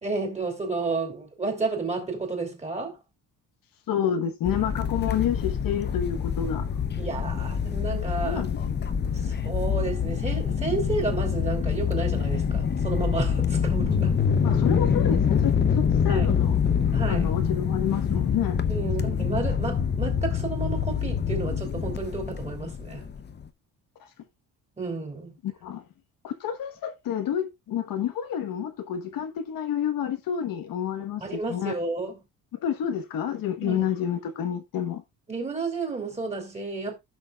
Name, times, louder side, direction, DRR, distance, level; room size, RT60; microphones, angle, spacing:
voice 1, 0.0-3.0 7.0-8.4 9.1-14.1 16.1-16.3 16.9-17.3 18.7-23.1 24.8-25.3 31.2-32.2 33.6-33.9 35.3-36.9, right 3 dB, 20° right, 3.4 m, -31 dB
voice 2, 3.9-6.6 8.2-8.9 14.4-16.6 17.1-18.6 19.0-19.2 24.0-24.1 25.4-25.8 26.2-31.7 32.6-35.0, left 9 dB, 65° left, 1.2 m, -29 dB
sound 1, 4.4-23.4, left 7 dB, 30° left, 0.7 m, -25 dB
15.5 x 6.2 x 2.3 m
cardioid pair, 135°, 36 cm